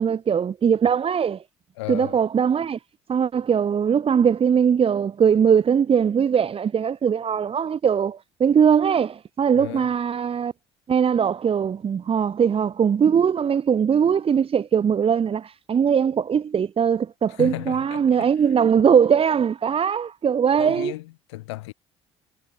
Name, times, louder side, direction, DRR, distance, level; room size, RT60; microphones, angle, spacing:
voice 1, 0.0-1.4 1.9-2.8 3.1-10.5 10.9-20.9, right 7 dB, 40° right, 5.9 m, -20 dB
voice 2, 1.8-2.2 9.5-9.9 17.3-18.3 20.6-21.7, left 20 dB, 75° left, 4.9 m, -34 dB
figure-of-eight pair, 55°, 15 cm